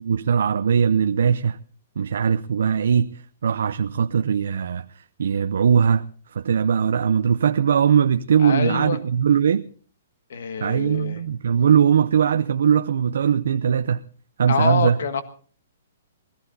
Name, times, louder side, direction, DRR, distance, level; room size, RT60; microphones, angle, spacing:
voice 1, 0.0-1.6 2.0-6.0 6.3-9.7 10.6-14.0 14.4-15.0, right 7 dB, 65° right, 0.7 m, -20 dB
voice 2, 8.4-9.0 10.3-11.2 14.5-15.2, left 6 dB, 60° left, 1.5 m, -25 dB
21.0 x 15.0 x 4.0 m
hypercardioid pair, 175°, 0 cm